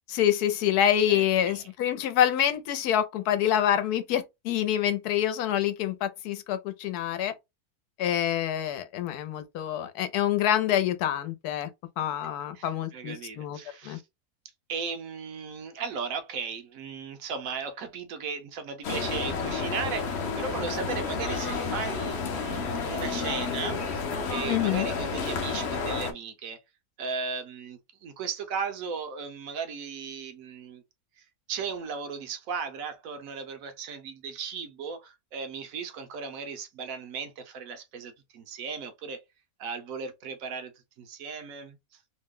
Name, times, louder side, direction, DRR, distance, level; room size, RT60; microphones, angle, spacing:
voice 1, 0.1-7.3 8.0-11.7 12.0-13.6 13.8-14.0 24.5-24.9, left 10 dB, 90° left, 1.1 m, -26 dB
voice 2, 1.1-1.7 12.5-14.0 14.7-26.6 27.0-30.8 31.2-39.2 39.6-40.7 41.0-41.8, right 5 dB, 70° right, 1.0 m, -36 dB
sound 1, 18.8-26.1, left 4 dB, 60° left, 0.7 m, -31 dB
2.9 x 2.1 x 3.5 m
omnidirectional pair, 1.6 m